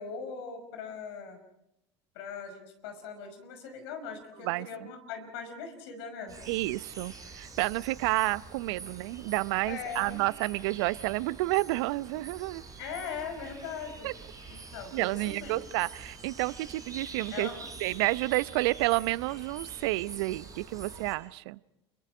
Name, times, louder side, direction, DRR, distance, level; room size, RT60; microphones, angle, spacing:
voice 1, 0.0-1.4 2.1-6.3 9.7-10.2 12.8-14.1 14.5-15.8 17.3-17.7, left 6 dB, 70° left, 7 dB, 5.6 m, -40 dB
sound 1, 6.3-21.1, right 4 dB, 25° right, 6.4 m, -46 dB
voice 2, 6.5-12.6 14.0-14.1 14.9-17.5 17.8-21.6, right 20 dB, 65° right, 18 dB, 0.7 m, -30 dB
30.0 x 22.5 x 5.0 m, 0.87 s
hypercardioid pair, 70°, 14 cm